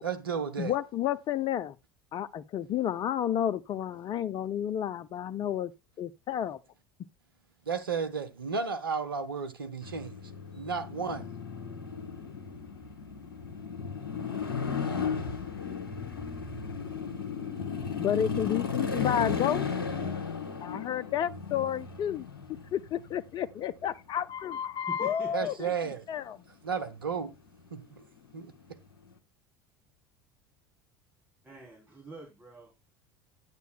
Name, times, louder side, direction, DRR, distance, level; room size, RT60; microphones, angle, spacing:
voice 1, 0.0-0.7 7.7-10.2 10.6-11.3 25.3-26.0 26.6-27.3 27.7-28.0 28.3-28.5, right 6 dB, 85° right, 0.8 m, -33 dB
voice 2, 0.6-1.8 2.1-5.7 6.0-6.6 18.0-19.7 20.6-22.3 22.7-25.7 26.1-26.4, left 10 dB, 40° left, 0.5 m, -31 dB
sound 1, 9.8-23.8 28.2-28.6, left 5 dB, 80° left, 1.0 m, -35 dB
voice 3, 24.8-25.5 31.4-33.0, right 1 dB, 15° right, 3.0 m, -46 dB
10.5 x 9.2 x 2.2 m
figure-of-eight pair, 70°, 12 cm